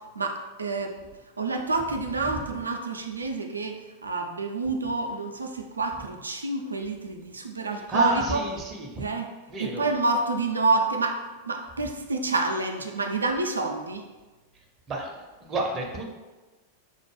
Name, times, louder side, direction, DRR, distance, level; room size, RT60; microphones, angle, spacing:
voice 1, 0.2-0.9 1.4-8.4 9.0-9.3 9.6-11.2 11.5-14.0, right 3 dB, 75° right, 4 dB, 0.4 m, -28 dB
voice 2, 7.9-9.0 9.5-9.9 14.9-15.1 15.4-16.0, right 2 dB, 25° right, 0 dB, 0.6 m, -30 dB
5.4 x 2.1 x 3.1 m, 1.2 s
figure-of-eight pair, 90°, 0 cm